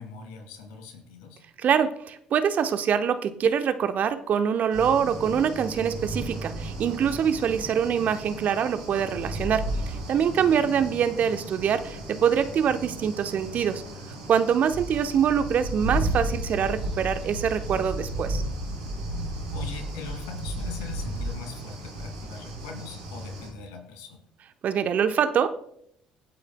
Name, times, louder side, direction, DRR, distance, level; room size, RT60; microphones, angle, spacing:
voice 1, 0.0-1.4 10.5-10.7 19.5-24.2, left 5 dB, 65° left, 5 dB, 2.4 m, -41 dB
voice 2, 1.6-13.8 14.3-18.4 24.6-25.5, right 8 dB, 45° right, 10 dB, 0.9 m, -24 dB
sound 1, 4.7-23.5, right 1 dB, 75° right, 4.1 m, -34 dB
25.0 x 8.6 x 2.2 m, 0.71 s
figure-of-eight pair, 55°, 4 cm